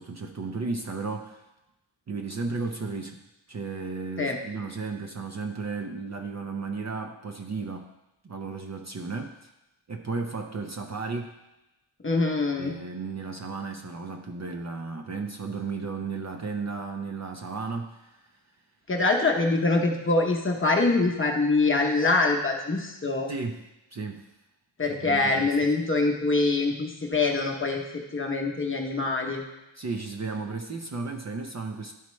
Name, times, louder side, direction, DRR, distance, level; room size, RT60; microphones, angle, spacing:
voice 1, 0.0-1.4 2.1-3.2 3.5-7.9 8.2-9.4 9.9-11.4 12.6-18.2 23.3-24.3 24.9-25.7 29.8-31.9, right 4 dB, 35° right, 3 dB, 0.5 m, -34 dB
voice 2, 12.0-12.7 18.9-23.3 24.8-29.4, left 3 dB, 25° left, 1 dB, 0.8 m, -24 dB
11.5 x 4.2 x 3.1 m, 0.96 s
wide cardioid pair, 150°, 47 cm